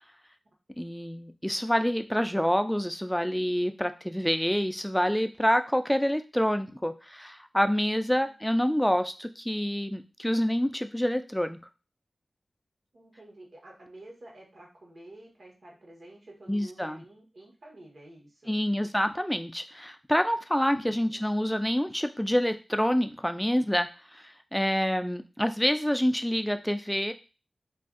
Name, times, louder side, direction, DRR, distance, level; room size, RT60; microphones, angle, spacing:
voice 1, 0.8-11.6 16.5-17.0 18.5-27.1, equal, 5° left, 9 dB, 0.3 m, -27 dB
voice 2, 7.9-8.3 12.9-18.6 20.8-21.2, right 1 dB, 70° right, -1 dB, 1.1 m, -50 dB
2.5 x 2.3 x 3.5 m, 0.31 s
wide cardioid pair, 70°, 0 cm